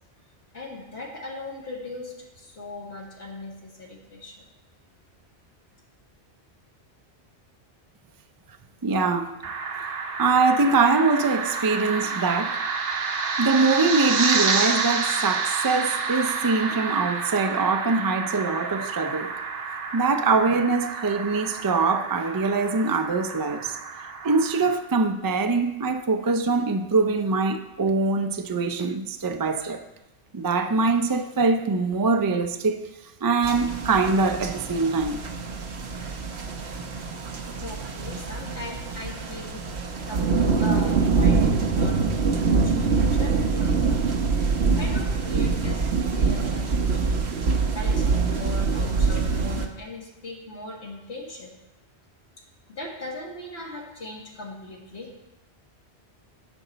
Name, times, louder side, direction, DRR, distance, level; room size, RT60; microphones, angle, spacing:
voice 1, 0.5-4.5 37.6-39.7 40.0-44.0 44.5-47.2 47.7-51.6 52.7-55.3, left 2 dB, 75° left, 1.9 m, -39 dB
voice 2, 8.8-9.3 9.8-12.6 13.4-19.3 19.9-23.8 24.2-29.8 30.3-32.8 33.2-35.2, right 4 dB, 30° right, 0.4 m, -23 dB
sound 1, 9.4-24.8, right 4 dB, 60° right, 1.0 m, -29 dB
sound 2, 33.4-49.7, right 4 dB, 80° right, 1.1 m, -24 dB
10.5 x 6.5 x 4.0 m
omnidirectional pair, 1.1 m